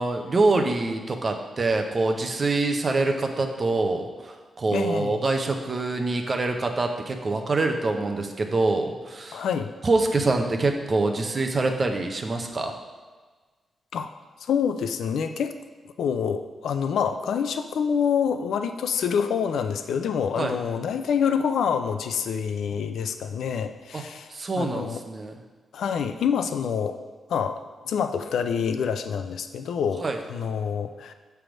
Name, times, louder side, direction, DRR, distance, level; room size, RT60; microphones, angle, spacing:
voice 1, 0.0-9.4 9.8-12.7 20.4-20.6 23.9-24.0 24.3-25.4 30.0-30.2, right 3 dB, 30° right, 4 dB, 0.6 m, -25 dB
voice 2, 4.7-5.2 9.3-9.7 13.9-14.1 14.4-15.5 16.0-25.0 25.7-27.0 27.3-31.1, left 7 dB, 85° left, 9 dB, 0.4 m, -27 dB
7.5 x 3.4 x 6.1 m, 1.4 s
wide cardioid pair, 150°, 0 cm